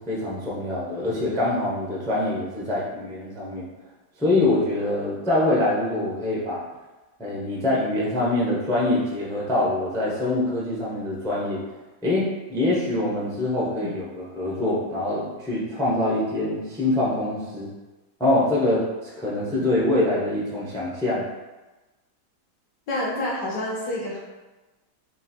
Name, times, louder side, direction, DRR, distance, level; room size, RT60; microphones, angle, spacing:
voice 1, 0.0-3.7 4.2-6.6 7.2-11.6 12.0-17.7 18.2-21.3, left 2 dB, 5° left, -6 dB, 0.3 m, -24 dB
voice 2, 22.9-24.2, left 1 dB, 60° left, -3 dB, 1.1 m, -28 dB
4.0 x 2.5 x 4.2 m, 1.2 s
omnidirectional pair, 2.1 m